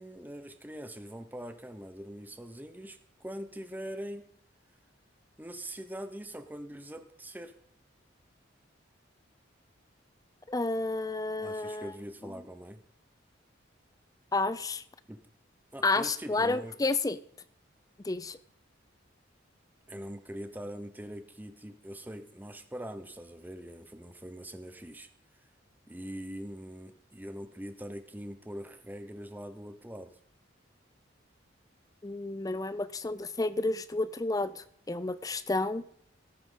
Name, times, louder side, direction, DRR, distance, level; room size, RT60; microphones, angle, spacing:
voice 1, 0.0-4.2 5.4-7.5 11.4-12.8 15.1-15.2 15.7-16.7 19.9-25.1 25.9-30.1, equal, 10° right, 9 dB, 0.9 m, -42 dB
voice 2, 10.5-11.9 12.2-12.3 14.3-14.8 15.8-17.2 18.0-18.4 32.0-35.8, left 3 dB, 20° left, 15 dB, 0.5 m, -31 dB
17.5 x 8.7 x 3.9 m, 0.68 s
head